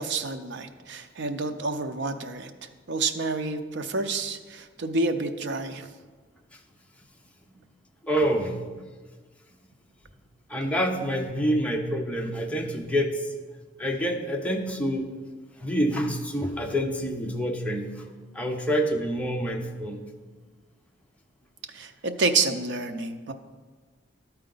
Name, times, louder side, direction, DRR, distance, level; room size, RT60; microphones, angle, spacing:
voice 1, 0.0-5.9 21.7-23.3, right 3 dB, 65° right, 7 dB, 0.6 m, -29 dB
voice 2, 8.0-8.6 10.5-13.3 13.8-15.1 15.6-18.0 18.3-20.0, equal, 5° left, 1 dB, 0.7 m, -27 dB
12.5 x 4.4 x 3.9 m, 1.4 s
head